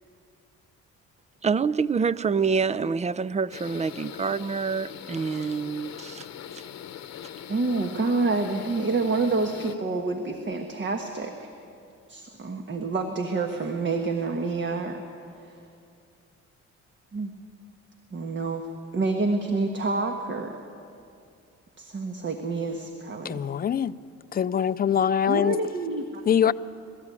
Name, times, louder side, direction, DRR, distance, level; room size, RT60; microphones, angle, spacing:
voice 1, 1.4-6.3, right 5 dB, 25° right, 0.4 m, -26 dB
sound 1, 3.5-9.7, left 9 dB, 60° left, 0.9 m, -41 dB
voice 2, 7.5-11.5 12.1-15.0 15.4-15.6 17.1-17.3 18.1-18.7 18.9-20.6 21.8-23.5 25.3-26.5, right 3 dB, 40° right, 1.4 m, -28 dB
voice 3, 23.2-23.9 24.3-25.6 26.3-26.5, left 8 dB, 30° left, 0.5 m, -23 dB
23.5 x 13.5 x 8.4 m
cardioid pair, 90°, 30 cm